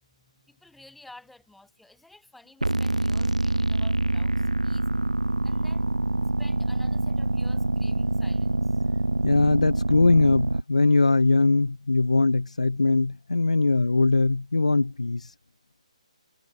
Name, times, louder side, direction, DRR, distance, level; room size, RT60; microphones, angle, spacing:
voice 1, 0.1-4.9 5.4-5.9 6.4-8.8, left 2 dB, ahead, 6.5 m, -52 dB
sound 1, 2.6-10.6, right 2 dB, 80° right, 0.6 m, -25 dB
voice 2, 9.2-15.3, left 3 dB, 70° left, 0.8 m, -21 dB
figure-of-eight pair, 140°, 4 cm